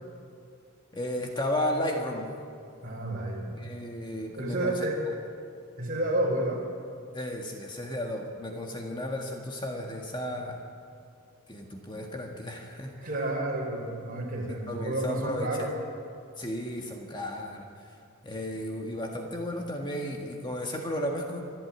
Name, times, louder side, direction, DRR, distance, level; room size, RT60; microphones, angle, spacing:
voice 1, 0.9-2.4 3.6-4.9 7.1-10.6 11.5-13.0 14.7-15.7 16.4-18.0 18.2-21.4, left 1 dB, 20° left, 1 dB, 1.7 m, -34 dB
voice 2, 2.8-3.6 4.4-5.0 5.8-6.6 13.0-15.7, right 1 dB, 45° right, -1 dB, 5.2 m, -30 dB
26.0 x 12.0 x 8.8 m, 2.3 s
head